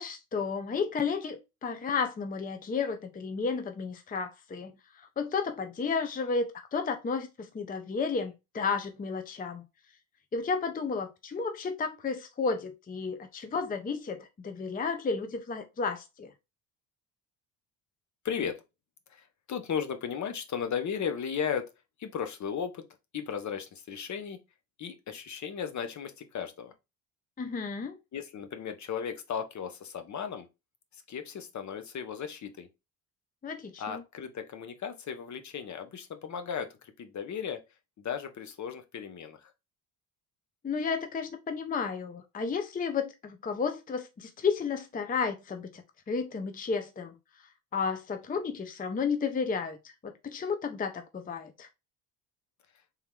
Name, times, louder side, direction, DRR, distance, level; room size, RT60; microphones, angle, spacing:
voice 1, 0.0-4.7 5.0-9.6 10.3-16.3 27.4-28.0 33.4-34.0 40.6-47.1 47.7-51.7, left 5 dB, 20° left, 0.6 m, -32 dB
voice 2, 18.2-18.6 19.1-21.7 22.0-22.9 23.1-24.4 24.8-26.7 28.1-30.5 30.9-32.7 33.8-37.6 38.0-39.5, left 7 dB, 45° left, 0.8 m, -36 dB
3.6 x 3.0 x 3.5 m
supercardioid pair, 70°, 40 cm